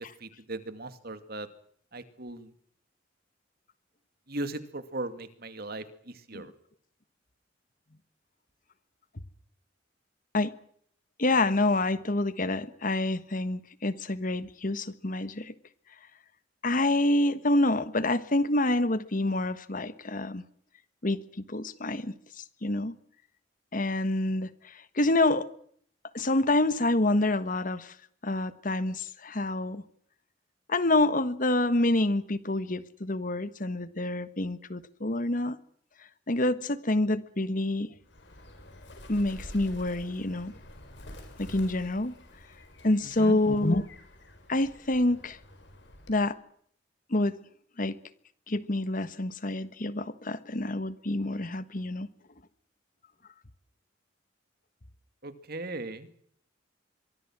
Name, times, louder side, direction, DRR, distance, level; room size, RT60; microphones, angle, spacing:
voice 1, 0.2-1.5 1.9-2.5 4.3-6.5 43.2-43.4 55.2-56.1, right 2 dB, 55° right, 11 dB, 2.4 m, -38 dB
voice 2, 11.2-15.5 16.6-20.4 21.0-21.2 21.5-22.1 22.6-23.0 23.7-24.5 24.9-25.5 26.1-27.9 28.2-29.8 30.7-35.6 36.3-37.9 39.1-40.5 41.4-42.2 42.8-43.8 44.5-45.4 46.1-46.3 47.1-47.4 47.8-48.0 48.5-52.1, left 2 dB, 45° left, 14 dB, 1.4 m, -27 dB
Bird, 38.0-46.3, left 1 dB, 65° left, 7.2 m, -48 dB
24.5 x 23.0 x 6.2 m, 0.63 s
head